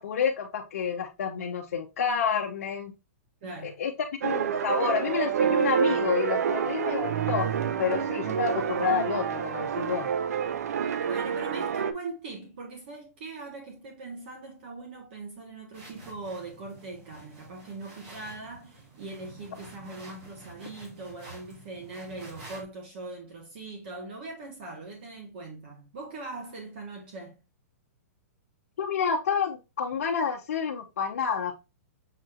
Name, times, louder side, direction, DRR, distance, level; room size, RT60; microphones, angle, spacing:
voice 1, 0.0-2.9 3.6-3.9 4.2-7.5 7.8-10.1 28.8-31.5, left 6 dB, 60° left, 0.9 m, -29 dB
voice 2, 3.4-3.8 11.0-27.4, right 3 dB, 40° right, 1.4 m, -41 dB
sound 1, 4.2-11.9, right 7 dB, 75° right, 0.6 m, -28 dB
sound 2, 15.7-22.6, right 2 dB, 25° right, 1.4 m, -49 dB
6.6 x 3.1 x 2.5 m
hypercardioid pair, 175°, 8 cm